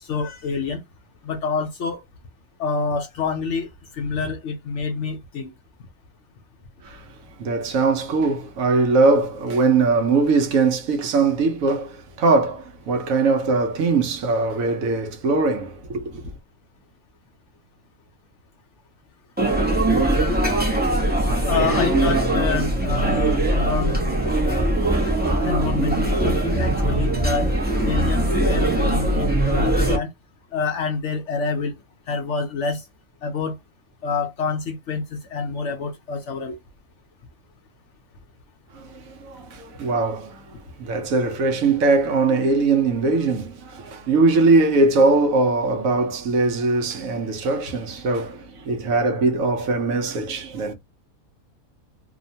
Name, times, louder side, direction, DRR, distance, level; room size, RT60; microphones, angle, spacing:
voice 1, 0.1-0.8 1.2-2.0 2.6-3.7 3.9-5.5 21.4-24.0 25.4-27.5 27.8-30.1 30.5-31.7 32.1-32.8 33.2-33.6 34.0-36.6, left 4 dB, 65° left, 0.8 m, -27 dB
voice 2, 7.4-16.3 38.7-40.5 40.8-50.7, right 3 dB, 70° right, 1.0 m, -21 dB
sound 1, 19.4-30.0, right 1 dB, 10° right, 0.5 m, -21 dB
2.9 x 2.1 x 2.6 m
omnidirectional pair, 1.5 m